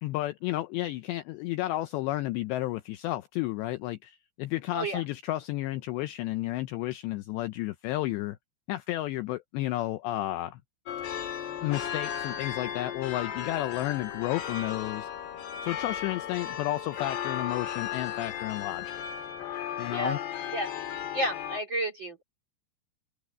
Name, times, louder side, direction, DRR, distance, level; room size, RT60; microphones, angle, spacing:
voice 1, 0.0-8.4 8.7-10.6 11.6-15.1 15.6-19.0 19.8-20.2, left 16 dB, 80° left, 2.5 m, -32 dB
sound 1, 10.9-21.6, left 9 dB, 60° left, 4.1 m, -35 dB
voice 2, 21.1-22.2, right 1 dB, 35° right, 2.2 m, -31 dB
omnidirectional pair, 5.7 m